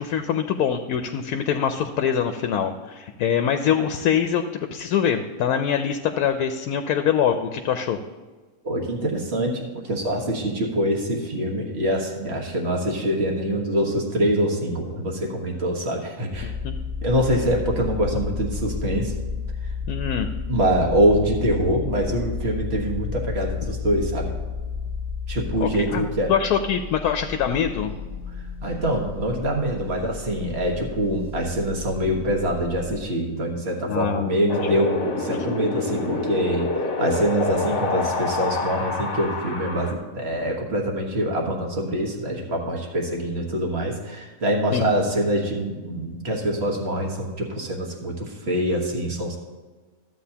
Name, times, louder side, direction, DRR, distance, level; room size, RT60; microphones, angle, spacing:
voice 1, 0.0-8.0 16.4-16.8 19.9-20.3 25.6-26.0 26.3-27.9 33.9-34.8 44.7-44.9, left 8 dB, 85° left, 7 dB, 1.1 m, -24 dB
voice 2, 8.6-16.5 17.0-19.1 19.6-19.7 20.5-24.3 25.3-26.3 28.6-36.7 37.0-49.4, right 1 dB, 45° right, 0 dB, 1.7 m, -24 dB
sound 1, 16.3-33.0, left 5 dB, 5° right, 1.4 m, -32 dB
Wind, 34.5-39.9, left 3 dB, 55° left, 1.3 m, -27 dB
13.0 x 8.1 x 2.8 m, 1.3 s
omnidirectional pair, 1.6 m